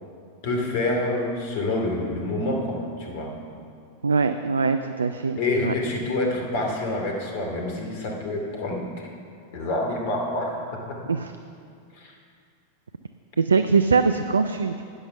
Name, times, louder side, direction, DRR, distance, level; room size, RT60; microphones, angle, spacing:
voice 1, 0.4-3.3 5.4-8.9 9.5-11.0 11.9-12.1, left 2 dB, 50° left, 0 dB, 2.4 m, -27 dB
voice 2, 4.0-5.4 5.6-5.7 11.1-11.3 13.4-14.8, right 5 dB, 75° right, 9 dB, 0.4 m, -22 dB
12.5 x 9.7 x 5.8 m, 2.3 s
figure-of-eight pair, 90°, 0 cm